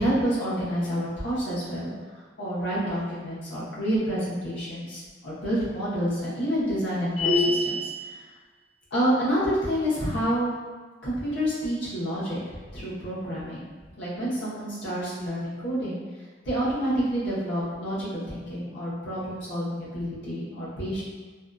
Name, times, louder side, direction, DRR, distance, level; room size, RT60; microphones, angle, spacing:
voice 1, 0.0-1.9 2.4-8.2 8.9-10.5 11.0-13.6 14.0-16.0 16.4-21.0, equal, 80° left, -10 dB, 0.9 m, -28 dB
sound 1, 7.2-8.0, left 2 dB, 35° left, 0.8 m, -24 dB
2.7 x 2.3 x 2.2 m, 1.3 s
head